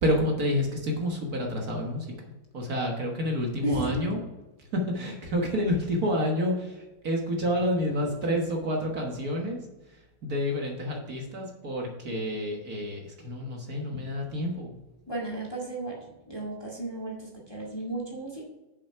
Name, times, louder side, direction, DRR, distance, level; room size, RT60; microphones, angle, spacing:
voice 1, 0.0-2.1 2.5-4.2 4.7-9.6 10.2-14.8, equal, 55° right, 0 dB, 1.7 m, -29 dB
voice 2, 3.6-4.1 15.1-16.0 16.3-18.4, right 1 dB, 15° left, -3 dB, 1.8 m, -33 dB
7.1 x 5.8 x 5.8 m, 1.1 s
omnidirectional pair, 2.0 m